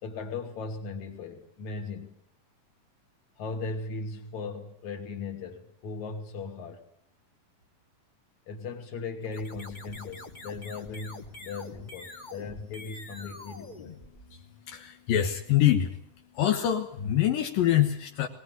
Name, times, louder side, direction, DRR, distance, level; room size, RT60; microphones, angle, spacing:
voice 1, 0.0-2.2 3.4-6.8 8.5-14.0, left 4 dB, 55° left, 5 dB, 3.8 m, -38 dB
sound 1, 9.2-14.7, left 2 dB, 25° left, 1.0 m, -46 dB
voice 2, 14.3-16.0 16.3-18.3, left 11 dB, 80° left, 4 dB, 3.0 m, -25 dB
21.0 x 20.0 x 9.8 m, 0.72 s
omnidirectional pair, 4.0 m